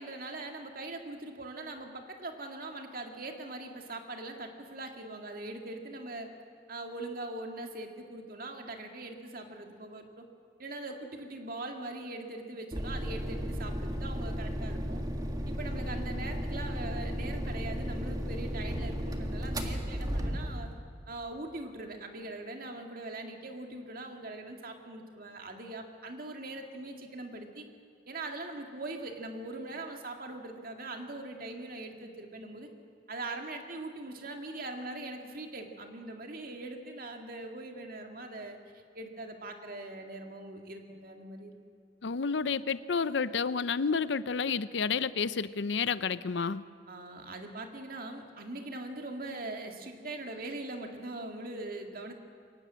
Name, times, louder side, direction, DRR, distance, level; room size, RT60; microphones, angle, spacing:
voice 1, 0.0-6.3 6.7-10.3 10.6-15.0 15.5-20.7 21.1-27.7 28.1-32.7 33.1-41.6 46.9-52.2, right 2 dB, 50° right, 4 dB, 2.2 m, -41 dB
sound 1, 12.7-20.7, equal, 20° right, 1.7 m, -34 dB
voice 2, 42.0-46.6, left 5 dB, 80° left, 16 dB, 0.6 m, -30 dB
23.0 x 18.5 x 7.6 m, 2.3 s
head